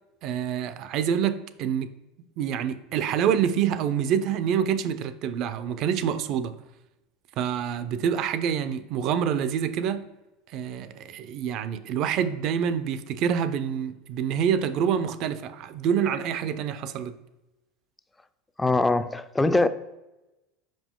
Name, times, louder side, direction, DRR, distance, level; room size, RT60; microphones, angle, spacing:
voice 1, 0.2-1.9 2.4-6.6 7.4-10.1 10.5-17.1, right 8 dB, 55° right, 0.4 m, -27 dB
voice 2, 18.6-19.7, left 2 dB, 10° left, 0.4 m, -22 dB
5.3 x 5.1 x 3.7 m
supercardioid pair, 105°, 0 cm